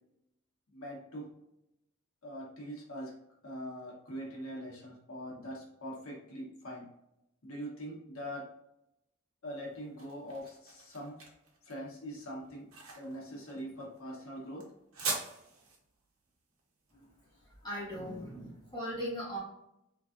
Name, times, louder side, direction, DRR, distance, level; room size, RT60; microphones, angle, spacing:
voice 1, 0.7-1.3 2.2-3.1 3.4-6.9 7.4-8.5 9.4-11.1 11.6-12.7 12.9-14.6, equal, 90° left, -2 dB, 1.1 m, -42 dB
sound 1, 9.5-18.5, right 4 dB, 90° right, 1.1 m, -43 dB
voice 2, 17.6-19.4, equal, 20° left, -7 dB, 1.5 m, -39 dB
3.6 x 3.2 x 2.5 m, 0.82 s
head